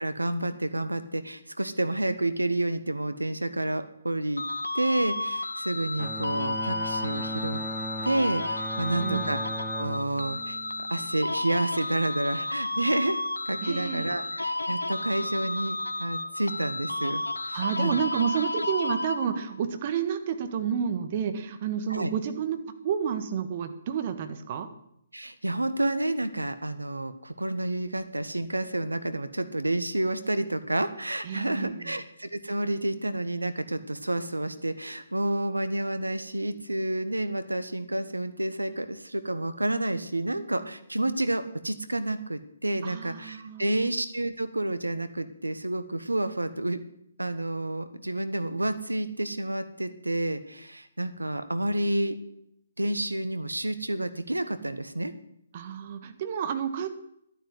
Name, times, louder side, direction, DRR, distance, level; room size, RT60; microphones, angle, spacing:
voice 1, 0.0-4.4 4.7-7.6 8.0-9.4 9.7-17.2 17.5-17.9 21.9-22.1 25.1-46.8 47.2-52.1 52.8-55.1, right 1 dB, 85° right, 11 dB, 1.3 m, -29 dB
sound 1, 4.4-19.6, left 2 dB, 85° left, 0.9 m, -32 dB
Bowed string instrument, 6.0-11.4, equal, 5° left, 0.7 m, -38 dB
voice 2, 8.9-9.3 13.6-14.4 17.5-24.7 31.2-32.0 42.8-43.9 55.5-56.9, right 8 dB, 40° right, 8 dB, 1.6 m, -30 dB
11.5 x 9.8 x 8.0 m, 0.75 s
figure-of-eight pair, 135°, 0 cm